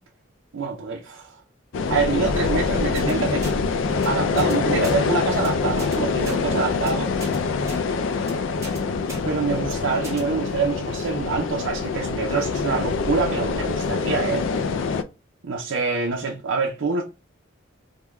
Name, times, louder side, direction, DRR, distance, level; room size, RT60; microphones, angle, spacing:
voice 1, 0.5-1.4 1.9-3.5 4.1-7.1 9.2-14.5 15.4-17.0, right 4 dB, 75° right, 0.5 m, -26 dB
sound 1, 1.7-15.0, left 4 dB, 70° left, 0.3 m, -25 dB
sound 2, 2.9-3.1 3.4-3.6 3.9-4.1 4.4-4.5 4.8-5.0 5.3-5.5 5.8-6.0 6.2-6.4 6.7-6.9 7.2-7.4 7.7-7.8 8.1-8.3 8.6-8.8 9.1-9.2 9.5-9.7 10.0-10.2, equal, 15° right, 0.8 m, -37 dB
3.4 x 2.2 x 3.0 m
head